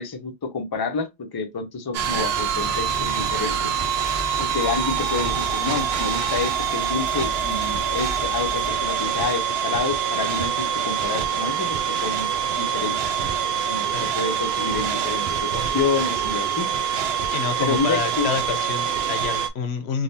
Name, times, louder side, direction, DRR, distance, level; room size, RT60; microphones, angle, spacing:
voice 1, 0.0-3.7 4.4-13.2 13.7-16.7 17.6-18.3, left 4 dB, 30° left, 0.5 m, -28 dB
Fill (with liquid), 1.9-9.6, left 3 dB, ahead, 0.9 m, -38 dB
sound 1, 1.9-19.5, right 8 dB, 75° right, 0.8 m, -25 dB
voice 2, 17.3-20.0, left 6 dB, 90° left, 1.0 m, -28 dB
3.5 x 2.7 x 2.7 m
omnidirectional pair, 1.1 m